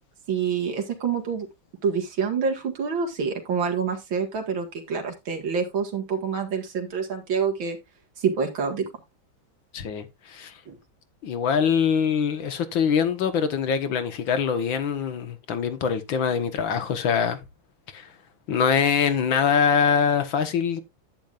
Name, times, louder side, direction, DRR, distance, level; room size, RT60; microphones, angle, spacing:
voice 1, 0.3-1.5 1.8-7.8 8.2-8.8 10.7-10.8, right 6 dB, 70° right, 2.6 m, -27 dB
voice 2, 9.7-10.5 11.2-17.4 17.9-18.1 18.5-20.8, left 7 dB, 70° left, 1.9 m, -23 dB
10.5 x 9.1 x 2.5 m
omnidirectional pair, 2.2 m